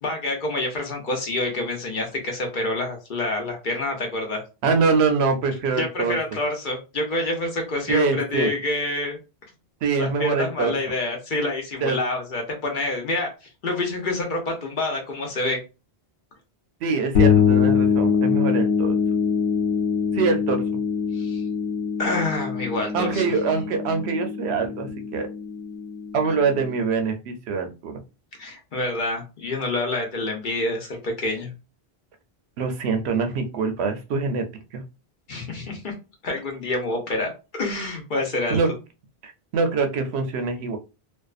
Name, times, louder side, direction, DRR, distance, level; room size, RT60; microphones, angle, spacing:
voice 1, 0.0-4.4 5.8-9.2 10.0-13.3 13.6-15.6 21.1-21.4 22.0-23.3 28.4-31.5 35.3-35.9 36.2-37.3 37.6-38.6, left 2 dB, 55° left, 2 dB, 0.8 m, -27 dB
voice 2, 4.6-6.2 7.9-8.5 9.8-10.8 11.8-12.0 16.8-19.0 20.1-20.6 22.9-25.3 26.1-28.0 32.6-34.4 34.7-34.8 38.5-38.7 39.2-40.8, right 4 dB, 80° right, 6 dB, 0.8 m, -24 dB
sound 1, 17.1-26.7, left 6 dB, 85° left, 1.0 m, -23 dB
2.5 x 2.2 x 2.3 m, 0.30 s
omnidirectional pair, 1.1 m